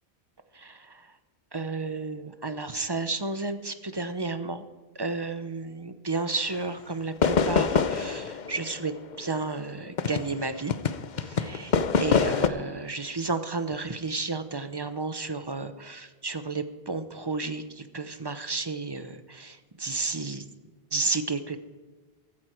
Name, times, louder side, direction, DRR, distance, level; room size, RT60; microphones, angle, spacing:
voice 1, 0.5-1.1 1.5-4.7 4.9-10.7 11.2-11.7 12.0-20.5 20.9-21.6, right 3 dB, 25° right, 10 dB, 0.9 m, -32 dB
sound 1, 6.5-6.7 7.2-10.4 10.7-12.5, left 5 dB, 50° left, 0.8 m, -25 dB
15.0 x 13.5 x 4.6 m, 1.3 s
omnidirectional pair, 1.1 m